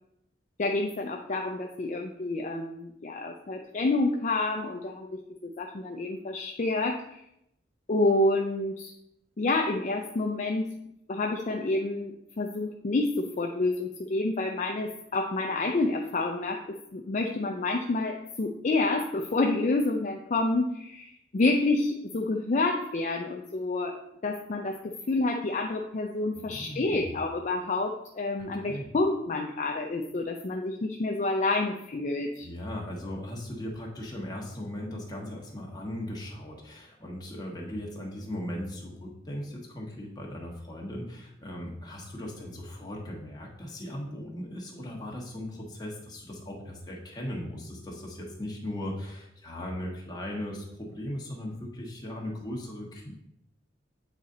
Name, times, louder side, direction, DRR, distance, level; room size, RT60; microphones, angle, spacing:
voice 1, 0.6-7.2 7.9-8.9 9.4-10.7 11.1-16.6 16.9-32.5, left 2 dB, 40° left, 2 dB, 0.5 m, -28 dB
voice 2, 26.3-27.2 28.5-28.9 32.4-53.1, left 1 dB, 20° left, -2 dB, 1.4 m, -38 dB
8.1 x 4.1 x 3.8 m, 0.81 s
head